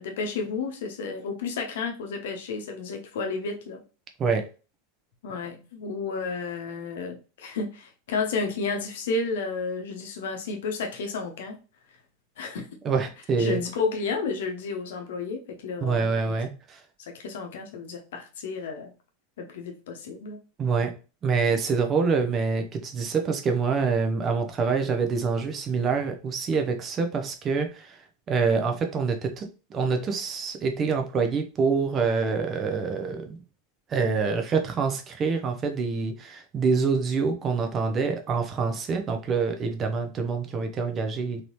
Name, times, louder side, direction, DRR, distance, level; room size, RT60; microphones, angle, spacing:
voice 1, 0.0-3.8 5.2-11.6 12.4-12.7 13.4-16.4 17.0-18.9 19.4-20.4, left 4 dB, 60° left, 4 dB, 1.0 m, -32 dB
voice 2, 12.8-13.6 15.8-16.8 20.6-20.9 21.2-28.0 28.3-33.4 33.9-41.4, right 5 dB, 30° right, 5 dB, 0.8 m, -26 dB
3.9 x 3.3 x 3.1 m, 0.33 s
figure-of-eight pair, 85°, 0 cm